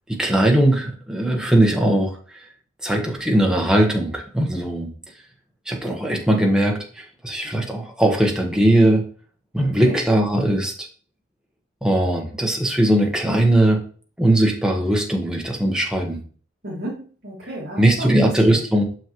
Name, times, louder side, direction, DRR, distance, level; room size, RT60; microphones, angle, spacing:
voice 1, 0.1-2.1 2.8-4.9 5.7-9.0 9.5-10.7 11.8-13.8 14.2-16.2 17.8-18.8, right 1 dB, 5° right, 0 dB, 1.1 m, -19 dB
voice 2, 9.6-10.0 16.6-18.6, right 1 dB, 55° right, -7 dB, 1.9 m, -32 dB
6.4 x 5.9 x 3.0 m, 0.42 s
head